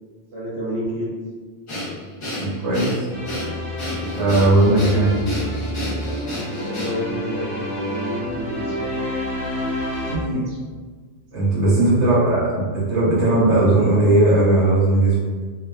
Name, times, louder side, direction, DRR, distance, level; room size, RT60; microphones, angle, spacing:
voice 1, 0.3-1.1 6.6-8.8 10.5-10.6 11.5-11.8, equal, 60° right, -6 dB, 0.8 m, -29 dB
Breathing, 1.7-7.2, equal, 50° left, 0.4 m, -30 dB
voice 2, 2.4-3.1 4.0-5.1 10.0-10.4 11.3-15.2, right 2 dB, 80° right, -8 dB, 1.2 m, -18 dB
sound 1, 3.1-10.2, equal, 5° left, 0.9 m, -29 dB
2.4 x 2.2 x 2.2 m, 1.5 s
omnidirectional pair, 1.2 m